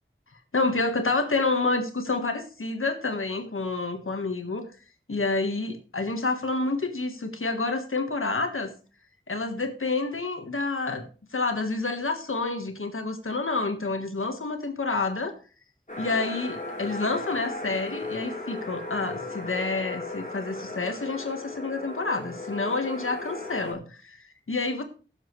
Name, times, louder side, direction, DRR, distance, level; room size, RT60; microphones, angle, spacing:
voice 1, 0.5-4.7 5.1-8.7 9.3-15.3 16.0-24.8, left 3 dB, 90° left, 6 dB, 1.4 m, -28 dB
sound 1, 15.9-23.7, left 2 dB, 40° left, 3.7 m, -36 dB
16.0 x 7.3 x 3.2 m, 0.37 s
wide cardioid pair, 50°, 21 cm